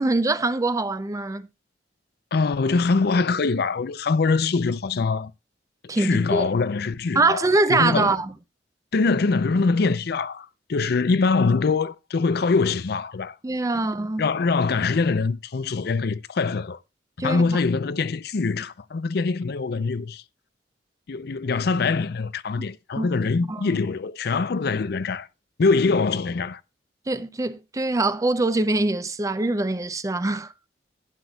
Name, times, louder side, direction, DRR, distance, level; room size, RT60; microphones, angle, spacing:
voice 1, 0.0-1.5 5.9-6.5 7.1-8.3 13.4-14.3 17.2-17.6 23.0-23.1 23.5-23.8 27.1-30.5, right 2 dB, 20° right, 0.5 m, -23 dB
voice 2, 2.3-5.3 5.8-7.4 7.7-8.2 8.9-13.4 14.2-16.8 17.2-20.2 21.1-25.3 25.6-26.6, left 4 dB, 65° left, 0.5 m, -23 dB
12.0 x 9.5 x 2.3 m
head